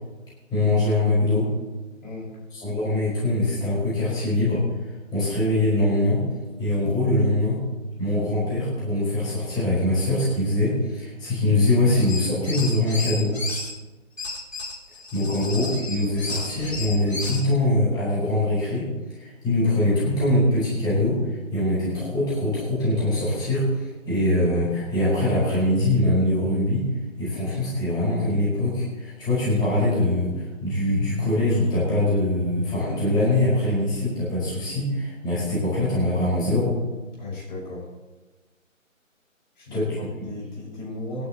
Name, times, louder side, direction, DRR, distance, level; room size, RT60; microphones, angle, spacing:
voice 1, 0.5-1.5 2.5-4.6 5.1-6.2 6.6-7.6 8.0-13.3 15.1-18.9 19.1-26.9 27.2-36.8 39.7-39.9, left 1 dB, 10° left, -9 dB, 5.5 m, -23 dB
voice 2, 2.0-2.4 15.2-15.3 37.2-37.9 39.6-41.3, left 2 dB, 35° left, -5 dB, 6.3 m, -35 dB
sound 1, 11.9-13.7 14.2-17.5, left 3 dB, 70° left, 4.8 m, -33 dB
26.5 x 12.5 x 3.1 m, 1.2 s
figure-of-eight pair, 150°, 40 cm